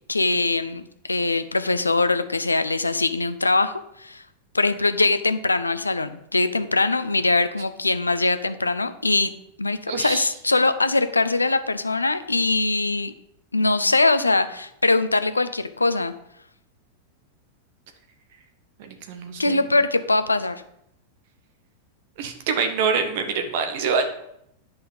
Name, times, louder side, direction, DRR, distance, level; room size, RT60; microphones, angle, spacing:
voice 1, 0.1-4.2 4.5-9.3 9.6-13.1 13.5-16.1 19.4-20.6, left 3 dB, 80° left, 12 dB, 0.6 m, -22 dB
voice 2, 9.9-10.3 18.8-19.6 22.2-24.0, right 5 dB, 50° right, 6 dB, 1.5 m, -25 dB
10.0 x 5.6 x 5.2 m, 0.76 s
figure-of-eight pair, 90°, 0 cm